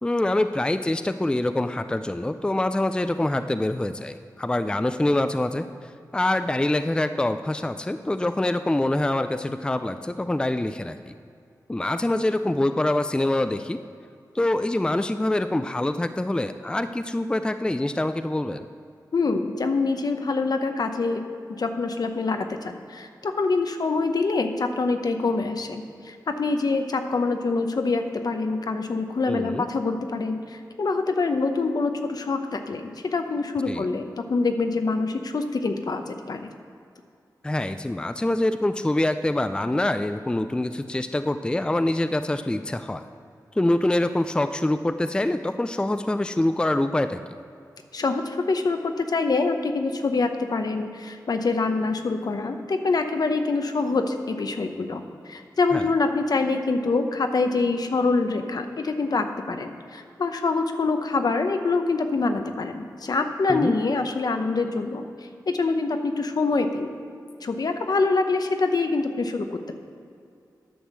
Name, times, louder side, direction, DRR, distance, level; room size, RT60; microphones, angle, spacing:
voice 1, 0.0-11.1 11.7-13.8 14.3-18.7 29.3-29.7 33.7-33.9 37.4-43.0 43.5-47.2 55.7-55.8 63.5-63.7, left 1 dB, 10° left, 10 dB, 0.4 m, -25 dB
voice 2, 19.1-36.5 47.9-66.9 67.4-69.7, left 3 dB, 65° left, 6 dB, 0.8 m, -25 dB
10.0 x 6.3 x 6.1 m, 2.4 s
cardioid pair, 60°, 7 cm